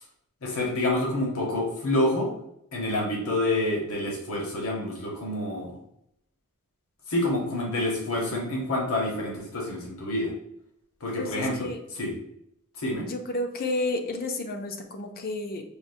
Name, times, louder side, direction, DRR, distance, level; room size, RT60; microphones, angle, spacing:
voice 1, 0.4-2.3 2.7-5.7 7.1-10.3 11.0-11.7 12.0-12.1 12.8-13.1, left 1 dB, 70° left, -1 dB, 0.9 m, -27 dB
voice 2, 11.2-11.8 13.0-15.6, left 2 dB, 40° left, 4 dB, 0.5 m, -31 dB
4.9 x 2.1 x 2.6 m, 0.76 s
head